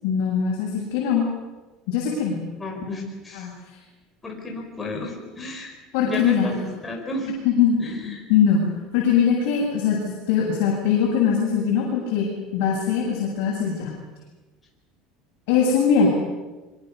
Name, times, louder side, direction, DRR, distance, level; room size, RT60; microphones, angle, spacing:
voice 1, 0.0-1.3 1.9-2.4 3.3-3.5 5.9-6.5 7.4-7.8 8.3-8.7 8.9-13.9 15.5-16.1, left 7 dB, 60° left, -4 dB, 7.9 m, -21 dB
voice 2, 2.6-3.5 4.2-5.7 6.0-7.3 7.8-8.2, left 2 dB, 10° left, 1 dB, 4.7 m, -32 dB
25.5 x 24.0 x 6.9 m, 1.2 s
cardioid pair, 170°, 0 cm